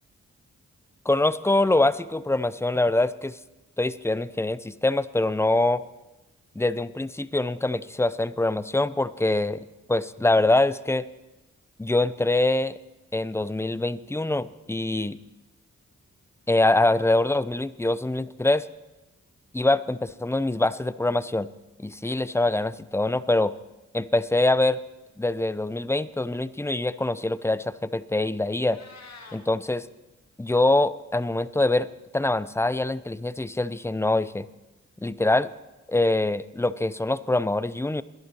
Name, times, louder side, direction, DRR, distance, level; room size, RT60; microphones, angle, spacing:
voice 1, 1.1-3.4 3.8-5.8 6.6-11.1 11.8-12.8 13.1-15.2 16.5-18.6 19.5-21.5 21.8-23.5 23.9-24.8 25.2-28.8 29.3-29.8 30.4-31.9 32.1-34.5 35.0-35.5 35.9-38.0, left 2 dB, 10° left, 16 dB, 0.5 m, -24 dB
Meow, 28.5-29.4, left 4 dB, 60° left, 1.7 m, -47 dB
21.5 x 11.0 x 3.0 m, 1.0 s
supercardioid pair, 40°, 31 cm